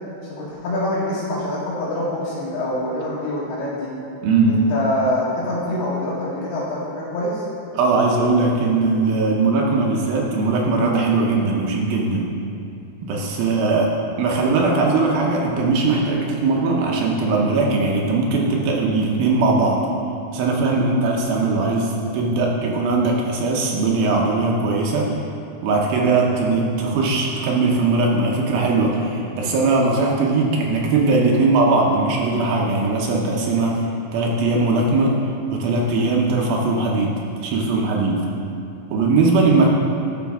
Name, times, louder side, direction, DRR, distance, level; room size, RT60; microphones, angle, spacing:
voice 1, 0.4-3.9 4.5-7.4, left 1 dB, 70° left, -9 dB, 3.2 m, -25 dB
voice 2, 4.2-4.6 7.7-12.3 13.0-19.8 20.3-25.1 25.6-33.8 34.1-35.2 35.5-37.1 37.4-38.2 38.9-39.7, right 3 dB, 75° right, -1 dB, 2.2 m, -19 dB
13.5 x 5.0 x 3.5 m, 2.6 s
omnidirectional pair, 4.9 m